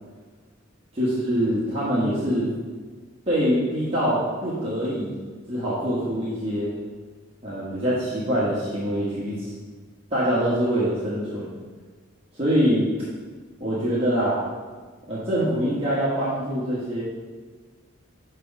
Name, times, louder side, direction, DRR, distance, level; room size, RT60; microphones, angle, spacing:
voice 1, 0.9-2.5 3.3-5.1 5.5-6.7 7.4-9.5 10.1-11.5 12.3-12.9 13.6-14.4 15.1-17.0, equal, 30° right, -9 dB, 1.3 m, -24 dB
5.9 x 4.6 x 5.2 m, 1.4 s
head